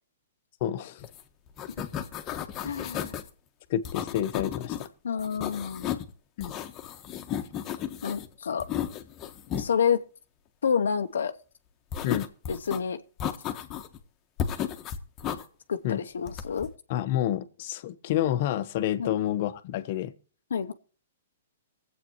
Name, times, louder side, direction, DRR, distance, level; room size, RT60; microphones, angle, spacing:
voice 1, 0.6-1.1 3.7-4.9 6.4-6.5 12.0-12.3 15.8-16.0 16.9-20.1, left 11 dB, 50° left, 1.0 m, -29 dB
sound 1, 1.0-1.2 1.5-3.3 3.9-4.9 5.2-6.1 6.4-8.3 8.6-9.7 11.9-12.8 13.2-14.0 14.4-15.4 16.3-16.7, left 9 dB, 30° left, 1.3 m, -34 dB
voice 2, 2.6-3.2 5.0-5.9 8.0-8.7 9.6-10.0 10.6-11.3 12.5-13.0 15.7-16.7 19.0-19.1 20.5-20.7, left 7 dB, 80° left, 0.8 m, -28 dB
23.5 x 8.2 x 3.1 m
hypercardioid pair, 130°, 0 cm